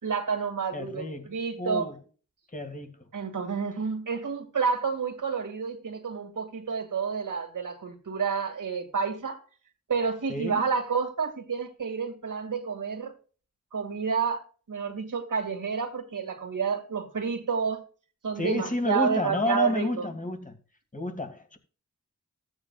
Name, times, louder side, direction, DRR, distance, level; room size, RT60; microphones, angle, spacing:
voice 1, 0.0-1.9 3.1-9.4 9.9-13.1 13.7-17.8 18.2-20.1, right 5 dB, 85° right, 2.2 m, -29 dB
voice 2, 0.7-2.0 2.5-3.1 10.3-10.6 18.4-20.6 20.9-21.6, left 1 dB, 25° left, 2.0 m, -30 dB
15.5 x 8.8 x 2.4 m
wide cardioid pair, 90°, 31 cm